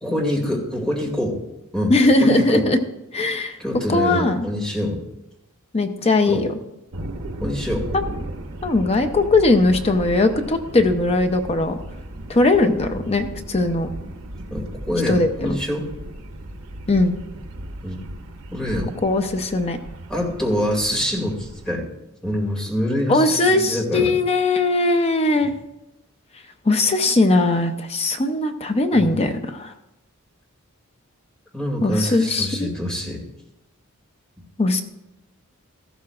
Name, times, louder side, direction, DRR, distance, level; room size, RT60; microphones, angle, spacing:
voice 1, 0.0-1.4 1.7-2.7 3.6-5.0 6.3-6.5 7.4-7.9 12.9-13.0 14.5-15.9 17.8-18.0 18.5-18.9 20.1-21.9 22.2-24.1 28.9-29.3 31.5-33.2, left 1 dB, 5° left, -2 dB, 2.4 m, -25 dB
voice 2, 1.9-2.8 3.1-3.6 3.9-4.5 5.7-6.5 7.9-8.0 8.6-11.8 12.3-13.9 15.1-15.6 16.9-17.2 19.0-19.8 23.1-25.5 26.7-29.7 31.8-32.7 34.6-34.8, left 2 dB, 30° left, 7 dB, 0.6 m, -19 dB
sound 1, 6.9-21.7, right 1 dB, 80° right, 1.0 m, -36 dB
14.0 x 12.5 x 2.4 m, 0.92 s
head